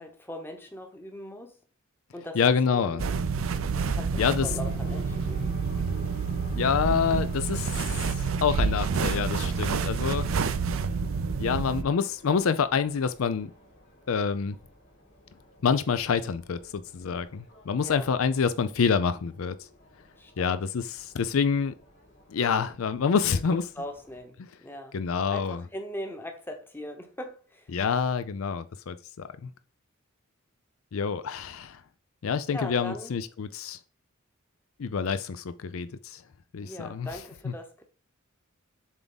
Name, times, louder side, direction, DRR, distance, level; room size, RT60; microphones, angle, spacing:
voice 1, 0.0-1.6 2.1-3.1 3.9-5.8 17.8-18.1 20.2-20.5 23.3-25.0 25.3-27.7 32.5-33.2 36.6-37.8, left 1 dB, 10° left, 0.9 m, -40 dB
voice 2, 2.4-3.0 4.2-4.5 6.6-10.6 11.4-13.5 14.1-14.6 15.6-19.6 20.4-21.7 22.3-23.6 24.9-25.6 27.7-29.5 30.9-31.8 32.2-33.8 34.8-36.2 36.5-37.1 37.4-37.5, left 6 dB, 75° left, 0.4 m, -27 dB
sound 1, 3.0-11.8, right 5 dB, 70° right, 0.5 m, -28 dB
Subway metro underground, 4.4-24.2, left 1 dB, 60° left, 3.3 m, -52 dB
7.2 x 3.5 x 4.0 m
head